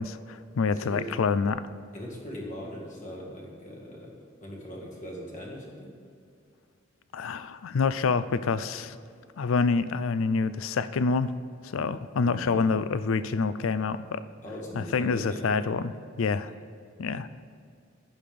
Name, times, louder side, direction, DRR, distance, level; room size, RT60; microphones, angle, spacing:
voice 1, 0.0-1.6 7.1-9.0 9.4-11.3 11.6-14.2 14.7-16.5 17.0-17.3, left 4 dB, 75° left, 14 dB, 0.4 m, -27 dB
voice 2, 0.7-1.2 1.9-5.9 12.2-12.7 14.4-15.5 17.2-17.3, equal, 35° left, -2 dB, 1.9 m, -40 dB
11.5 x 9.5 x 3.5 m, 2.3 s
head